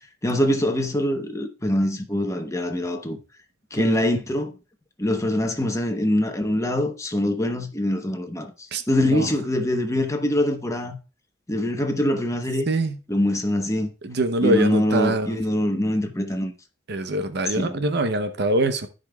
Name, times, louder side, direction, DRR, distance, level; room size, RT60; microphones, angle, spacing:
voice 1, 0.2-3.2 3.7-4.5 5.0-11.0 11.5-12.7 13.1-13.9 14.4-16.5 17.5-17.7, left 1 dB, 15° left, 1.0 m, -24 dB
voice 2, 8.7-9.3 12.7-13.0 14.0-15.4 16.9-18.9, right 1 dB, 60° right, 0.7 m, -24 dB
15.5 x 5.2 x 2.3 m
head